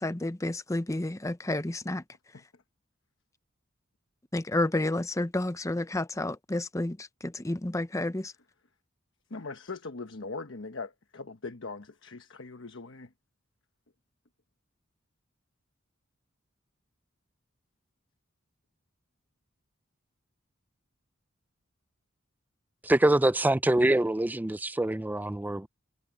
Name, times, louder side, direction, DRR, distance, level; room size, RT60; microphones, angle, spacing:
voice 1, 0.0-2.0 4.3-8.3, left 2 dB, 15° left, 0.7 m, -30 dB
voice 2, 9.3-13.1, left 3 dB, 65° left, 1.2 m, -40 dB
voice 3, 22.8-25.7, right 1 dB, 10° right, 0.4 m, -25 dB
head